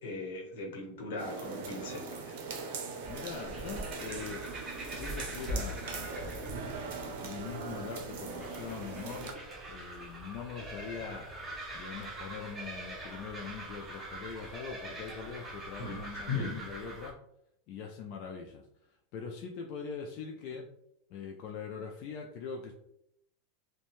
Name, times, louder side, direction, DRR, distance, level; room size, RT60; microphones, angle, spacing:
voice 1, 0.0-2.4 2.6-2.9 15.8-16.5, left 3 dB, 80° left, 0 dB, 0.9 m, -38 dB
sound 1, 1.2-9.3, right 4 dB, 70° right, 0.6 m, -41 dB
sound 2, 3.0-17.1, right 1 dB, 15° right, 0.8 m, -43 dB
voice 2, 3.1-4.4 4.9-6.4 6.9-9.3 9.7-11.3 11.7-17.2 17.7-20.7 21.1-22.7, left 6 dB, 50° left, 1 dB, 0.3 m, -42 dB
2.6 x 2.2 x 2.9 m, 0.77 s
supercardioid pair, 135°, 0 cm